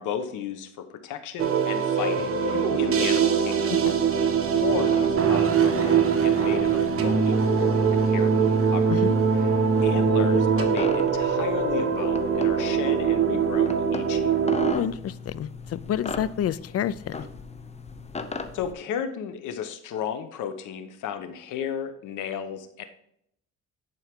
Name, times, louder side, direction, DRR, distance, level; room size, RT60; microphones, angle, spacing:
voice 1, 0.0-3.7 4.5-9.0 9.4-9.5 9.8-14.4 18.5-22.8, left 8 dB, 90° left, 9 dB, 1.1 m, -34 dB
Love Jesus Lead, 1.4-14.7, right 6 dB, 45° right, 1.3 m, -22 dB
sound 1, 3.8-18.7, left 4 dB, 20° left, 0.8 m, -39 dB
voice 2, 14.7-17.3, left 10 dB, 55° left, 19 dB, 0.5 m, -29 dB
10.5 x 4.7 x 3.6 m, 0.73 s
cardioid pair, 90°, 30 cm